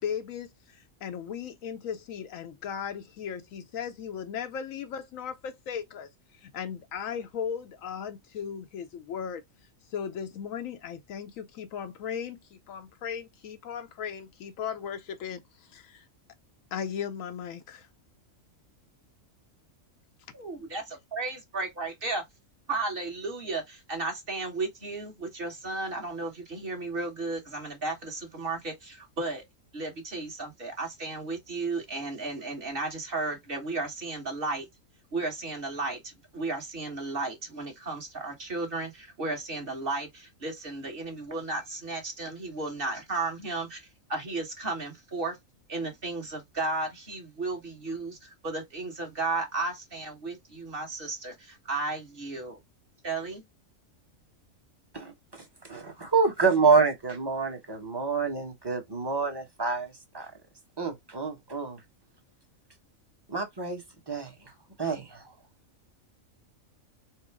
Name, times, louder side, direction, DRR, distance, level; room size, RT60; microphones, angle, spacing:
voice 1, 0.0-9.4 9.9-16.1 16.7-17.9, left 7 dB, 75° left, 1.0 m, -37 dB
voice 2, 20.3-22.2 22.7-29.4 29.7-34.7 35.1-45.4 45.7-52.6 53.0-53.4, right 3 dB, 40° right, 1.7 m, -34 dB
voice 3, 54.9-60.3 60.8-61.8 63.3-64.5 64.8-65.3, right 4 dB, 20° right, 1.0 m, -28 dB
4.6 x 2.1 x 4.7 m
omnidirectional pair, 1.4 m